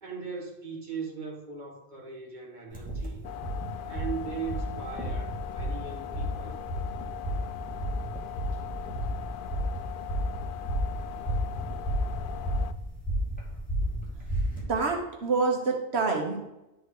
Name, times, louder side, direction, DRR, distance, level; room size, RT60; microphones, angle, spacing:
voice 1, 0.0-3.2 3.9-6.6, right 5 dB, 50° right, -1 dB, 1.9 m, -39 dB
sound 1, 2.7-14.6, equal, 10° left, 2.3 m, -32 dB
sound 2, 3.2-12.7, left 13 dB, 60° left, 0.7 m, -40 dB
voice 2, 14.7-16.4, right 4 dB, 90° right, 1 dB, 1.5 m, -27 dB
11.0 x 4.4 x 4.9 m, 0.96 s
omnidirectional pair, 1.1 m